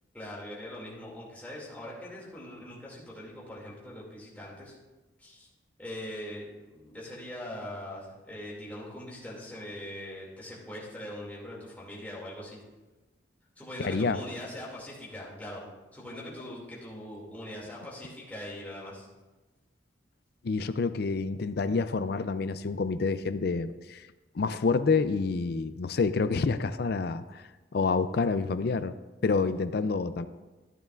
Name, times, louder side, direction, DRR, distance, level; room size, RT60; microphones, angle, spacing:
voice 1, 0.1-4.7 5.2-5.5 5.8-12.6 13.6-19.1, left 1 dB, 10° left, -5 dB, 2.4 m, -42 dB
voice 2, 13.8-14.2 20.4-24.0 24.4-27.4 27.7-29.0 29.2-30.3, left 4 dB, 60° left, 12 dB, 0.4 m, -28 dB
14.0 x 9.0 x 2.5 m, 1.2 s
head